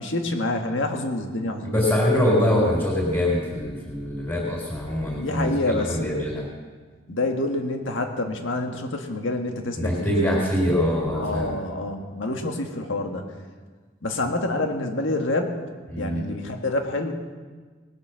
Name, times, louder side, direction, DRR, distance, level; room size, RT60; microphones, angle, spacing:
voice 1, 0.0-1.8 5.1-6.2 7.1-10.4 11.2-13.2 14.0-15.5 16.0-17.1, left 2 dB, 80° left, 4 dB, 1.7 m, -27 dB
voice 2, 1.6-6.5 9.7-11.6 15.9-16.2, left 1 dB, 10° left, -3 dB, 4.1 m, -24 dB
19.5 x 8.3 x 6.4 m, 1.5 s
head